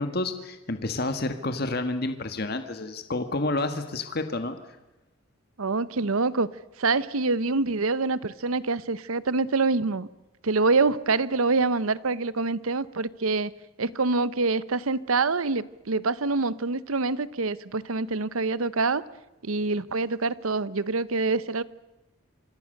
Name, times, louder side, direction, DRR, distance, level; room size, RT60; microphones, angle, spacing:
voice 1, 0.0-4.6, left 2 dB, 50° left, 8 dB, 1.6 m, -29 dB
voice 2, 5.6-6.5 6.8-10.1 10.4-13.5 13.8-19.0 19.4-21.6, right 3 dB, 90° right, 17 dB, 0.9 m, -25 dB
27.0 x 25.5 x 6.6 m, 1.0 s
head